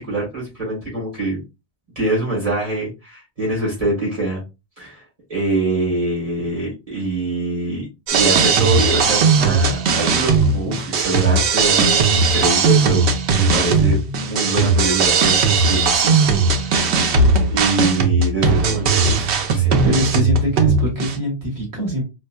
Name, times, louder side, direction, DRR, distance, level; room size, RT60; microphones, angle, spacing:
voice 1, 0.0-1.4 2.0-4.4 4.8-5.0 5.3-13.0 13.3-16.2 16.6-17.1 17.5-19.9, right 2 dB, 35° right, -6 dB, 1.8 m, -24 dB
sound 1, 8.1-21.2, right 4 dB, 90° right, 0.9 m, -17 dB
voice 2, 19.8-22.0, equal, 20° right, -5 dB, 1.9 m, -22 dB
4.4 x 2.5 x 2.2 m, 0.26 s
omnidirectional pair, 1.1 m